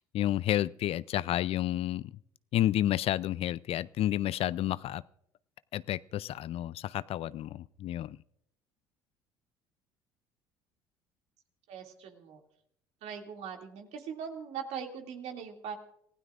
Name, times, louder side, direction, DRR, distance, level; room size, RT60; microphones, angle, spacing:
voice 1, 0.1-2.1 2.5-5.0 5.7-8.2, left 13 dB, 55° left, 19 dB, 0.4 m, -30 dB
voice 2, 11.7-12.4 13.0-15.8, right 7 dB, 65° right, 3 dB, 2.5 m, -40 dB
27.5 x 16.0 x 2.5 m, 0.75 s
hypercardioid pair, 65°, 12 cm